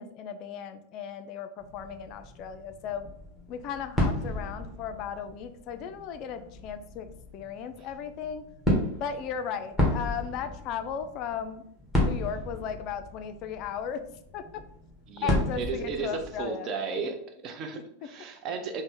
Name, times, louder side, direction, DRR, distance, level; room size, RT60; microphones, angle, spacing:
voice 1, 0.0-3.0 3.5-7.1 7.3-8.4 8.9-11.6 12.0-14.0 14.3-14.4 15.2-16.7, left 7 dB, 40° left, 9 dB, 0.3 m, -36 dB
sound 1, 1.6-16.5, left 1 dB, ahead, 1.2 m, -33 dB
voice 2, 15.1-18.8, right 4 dB, 35° right, 5 dB, 0.5 m, -34 dB
3.8 x 2.1 x 3.7 m, 0.70 s
figure-of-eight pair, 90°, 0 cm